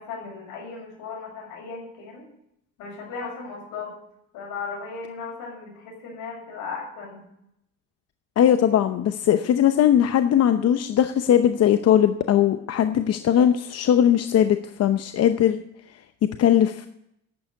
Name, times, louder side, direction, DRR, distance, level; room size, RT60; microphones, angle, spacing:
voice 1, 0.0-2.3 2.8-3.9 4.3-7.3, left 5 dB, 80° left, 0 dB, 6.7 m, -36 dB
voice 2, 8.4-15.6 16.4-16.9, left 10 dB, 50° left, 9 dB, 0.8 m, -19 dB
11.5 x 8.6 x 8.2 m, 0.79 s
cardioid pair, 95°, 31 cm